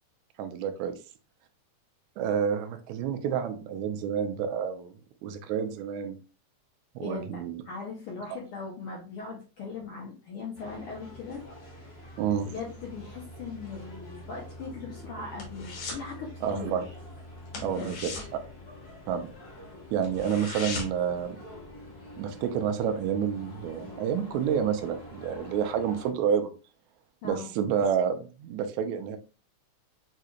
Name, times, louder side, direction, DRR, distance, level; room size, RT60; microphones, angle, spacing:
voice 1, 0.4-1.0 2.2-5.0 5.2-6.2 7.0-7.6 12.2-12.5 16.4-16.9 17.6-18.1 19.1-19.3 19.9-21.4 22.2-26.5 27.2-29.2, right 8 dB, 75° right, 7 dB, 1.9 m, -29 dB
voice 2, 7.0-11.5 11.8-12.1 12.5-16.9 17.6-18.0 27.2-27.5, left 4 dB, 75° left, -1 dB, 1.3 m, -40 dB
sound 1, 10.5-26.1, left 1 dB, 40° left, 0.9 m, -46 dB
sound 2, 14.5-16.1 16.4-16.7 17.0-17.1 17.5-19.3 19.7-19.8 20.0-21.1 21.5-21.6, left 4 dB, 60° left, 2.2 m, -39 dB
6.6 x 3.2 x 2.3 m, 0.34 s
omnidirectional pair, 3.5 m